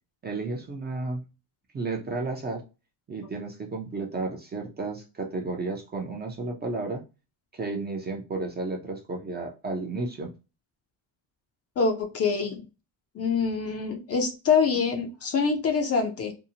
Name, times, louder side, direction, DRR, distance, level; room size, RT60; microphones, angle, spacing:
voice 1, 0.2-1.2 1.7-2.6 3.1-7.0 7.5-10.3, right 3 dB, 25° right, 2 dB, 0.4 m, -32 dB
voice 2, 11.8-12.7 13.1-16.3, left 5 dB, 35° left, 5 dB, 0.4 m, -25 dB
2.7 x 2.0 x 2.7 m, 0.30 s
cardioid pair, 115°, 45 cm